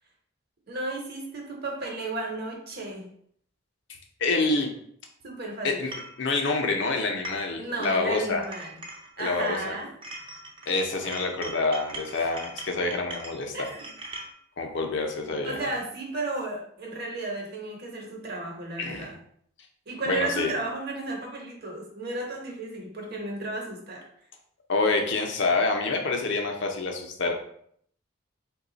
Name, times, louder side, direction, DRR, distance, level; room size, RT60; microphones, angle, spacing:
voice 1, 0.7-3.1 5.2-5.8 7.6-8.7 9.2-9.9 13.5-13.9 15.4-19.2 19.9-24.0, right 2 dB, 55° right, 0 dB, 0.9 m, -33 dB
voice 2, 4.2-4.7 5.6-5.9 6.2-8.5 9.2-9.8 10.7-13.5 14.6-15.6 18.8-19.1 20.1-20.5 24.7-27.3, left 3 dB, 60° left, 3 dB, 0.6 m, -27 dB
sound 1, 5.9-6.1 7.0-7.6 7.8-9.7 10.0-14.3, right 1 dB, 25° right, 0.5 m, -41 dB
3.2 x 2.3 x 3.9 m, 0.65 s
head